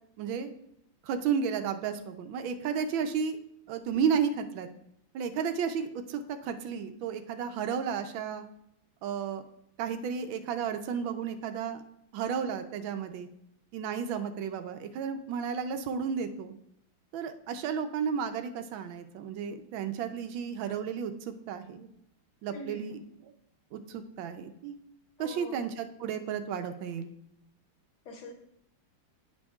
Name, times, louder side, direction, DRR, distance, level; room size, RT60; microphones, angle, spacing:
voice 1, 0.2-0.5 1.0-3.4 3.7-4.7 5.1-8.4 9.0-9.4 9.8-11.8 12.1-13.3 13.7-16.5 17.1-21.9 22.4-23.0 23.7-24.8 25.2-27.1, right 7 dB, 85° right, 8 dB, 1.4 m, -33 dB
voice 2, 22.5-23.0 25.2-25.7 28.1-28.3, left 1 dB, 85° left, 4 dB, 1.7 m, -43 dB
10.5 x 5.2 x 2.4 m, 0.75 s
omnidirectional pair, 2.1 m